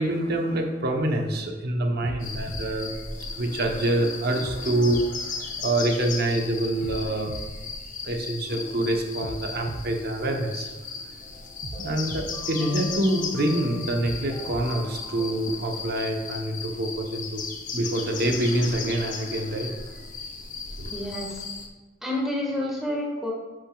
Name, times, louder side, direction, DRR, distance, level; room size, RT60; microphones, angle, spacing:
voice 1, 0.0-7.4 8.0-10.7 11.0-11.1 11.8-17.5 17.7-20.0 20.8-21.0, right 1 dB, 50° right, 3 dB, 0.9 m, -26 dB
sound 1, 1.1-1.4 2.0-3.8 4.4-6.2 6.8-8.6 9.2-11.0 11.6-13.4 14.0-15.8, right 3 dB, 35° right, 0.4 m, -41 dB
sound 2, 2.2-21.7, left 5 dB, 40° left, 0.7 m, -36 dB
sound 3, 11.2-16.2, left 2 dB, 20° left, 1.2 m, -44 dB
voice 2, 20.9-21.4 22.0-23.3, left 1 dB, ahead, -3 dB, 1.6 m, -29 dB
9.8 x 6.1 x 2.3 m, 1.2 s
head